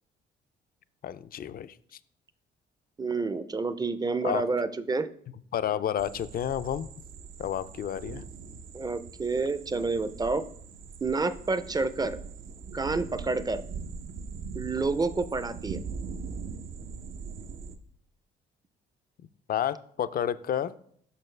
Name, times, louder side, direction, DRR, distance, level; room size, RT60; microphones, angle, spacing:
voice 1, 1.0-1.7 4.2-4.5 5.5-6.9 7.4-8.2 19.5-20.7, left 10 dB, 50° left, 14 dB, 0.4 m, -30 dB
voice 2, 3.0-5.1 8.7-10.4 11.0-12.2 12.7-13.6 14.5-15.8, right 3 dB, 20° right, 13 dB, 0.4 m, -29 dB
sound 1, 6.0-17.7, right 5 dB, 75° right, 0.7 m, -41 dB
6.7 x 5.8 x 3.2 m, 0.64 s
cardioid pair, 90°, 20 cm